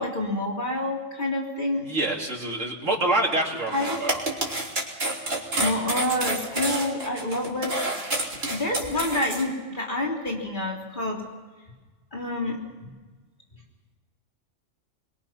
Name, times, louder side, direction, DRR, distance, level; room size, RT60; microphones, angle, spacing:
voice 1, 0.0-1.9 3.7-4.0 5.5-8.0 8.4-11.2 12.1-12.9, left 1 dB, 40° left, -1 dB, 3.5 m, -28 dB
voice 2, 1.8-4.2, right 2 dB, 80° right, -1 dB, 3.9 m, -26 dB
sound 1, 3.7-9.4, right 2 dB, 50° right, 3.8 m, -29 dB
24.0 x 23.5 x 5.8 m, 1.3 s
omnidirectional pair, 1.3 m